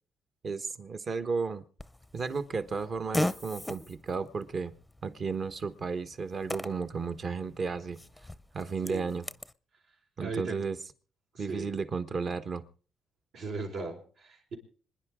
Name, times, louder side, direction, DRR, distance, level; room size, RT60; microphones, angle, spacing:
voice 1, 0.4-1.6 2.1-4.7 5.0-8.0 8.5-9.3 10.2-10.8 11.4-12.6, right 5 dB, 45° right, 1.3 m, -33 dB
Fart, 1.8-9.5, left 1 dB, 5° left, 0.6 m, -39 dB
voice 2, 10.2-10.6 11.3-11.7 13.3-14.6, right 3 dB, 75° right, 4.5 m, -38 dB
26.0 x 10.5 x 3.7 m
cardioid pair, 90°, 0 cm